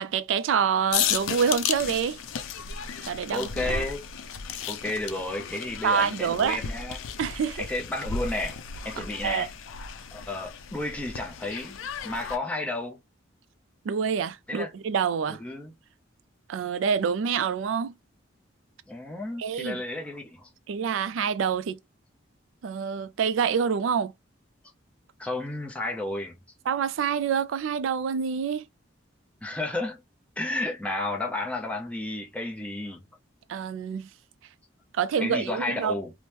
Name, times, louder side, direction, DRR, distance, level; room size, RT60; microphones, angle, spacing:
voice 1, 0.0-2.2 3.1-3.8 5.8-6.6 7.2-7.6 9.0-9.5 13.8-15.4 16.5-17.9 19.4-19.8 20.7-21.8 22.6-24.1 26.7-28.6 33.5-34.1 34.9-36.0, right 6 dB, 75° right, 0.3 m, -27 dB
sound 1, 0.9-12.4, left 7 dB, 85° left, 0.4 m, -34 dB
voice 2, 3.3-4.0 4.7-7.1 7.6-8.6 8.8-9.5 10.1-13.0 14.5-14.7 15.3-15.7 18.9-20.5 25.2-26.4 29.4-30.0 30.4-33.0 35.2-36.1, left 2 dB, 5° left, 0.5 m, -32 dB
3.0 x 2.0 x 3.2 m
head